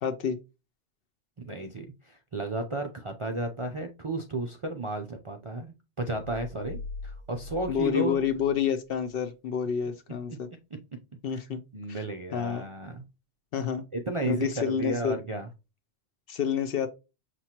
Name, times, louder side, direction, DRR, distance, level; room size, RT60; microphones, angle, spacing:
voice 1, 0.0-0.4 7.7-10.5 11.2-11.6 11.9-12.0 12.3-12.7 13.5-13.8 14.3-15.2 16.3-16.9, left 8 dB, 60° left, 0.7 m, -28 dB
voice 2, 1.4-8.2 10.3-10.4 10.7-10.8 11.3-11.4 11.7-13.0 13.5-13.6 13.9-15.5, right 2 dB, 45° right, 0.4 m, -33 dB
sound 1, 6.2-9.1, left 3 dB, 70° right, 0.8 m, -42 dB
5.8 x 3.0 x 2.8 m
omnidirectional pair, 1.2 m